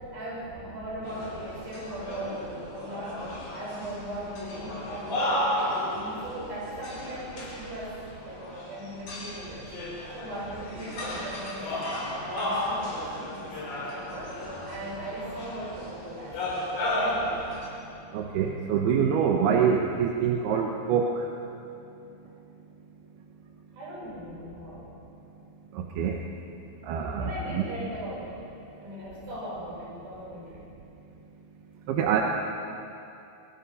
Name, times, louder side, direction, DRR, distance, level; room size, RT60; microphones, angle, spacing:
voice 1, 0.0-3.2 3.5-8.0 8.2-9.7 10.1-11.7 12.1-16.6 16.9-17.4 23.7-24.9 27.2-28.4 28.8-30.6, right 1 dB, 70° right, -6 dB, 9.1 m, -38 dB
sound 1, 1.0-17.7, left 1 dB, 75° left, 6.1 m, -34 dB
voice 2, 18.1-21.3 25.7-26.2 26.8-27.6 31.9-32.2, right 7 dB, 90° right, 2 dB, 3.1 m, -25 dB
26.5 x 21.5 x 5.5 m, 2.7 s
omnidirectional pair, 4.4 m